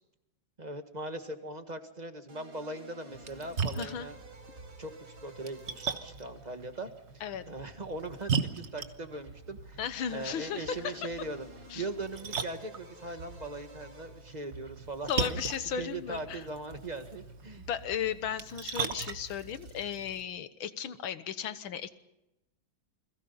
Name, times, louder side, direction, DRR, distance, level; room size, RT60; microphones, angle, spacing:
voice 1, 0.6-4.2 4.8-6.9 7.5-9.8 10.1-11.5 11.7-15.4 15.8-17.7, right 2 dB, 20° right, 7 dB, 1.6 m, -40 dB
sound 1, 2.3-17.6, right 1 dB, 90° right, 4.6 m, -55 dB
Splash splatter, 3.1-20.2, right 5 dB, 40° right, 1.3 m, -39 dB
voice 2, 3.8-4.1 7.2-7.4 9.8-11.0 11.7-11.9 15.1-16.4 17.6-21.9, left 8 dB, 85° left, 13 dB, 1.9 m, -35 dB
29.0 x 21.5 x 5.6 m, 0.93 s
omnidirectional pair, 2.2 m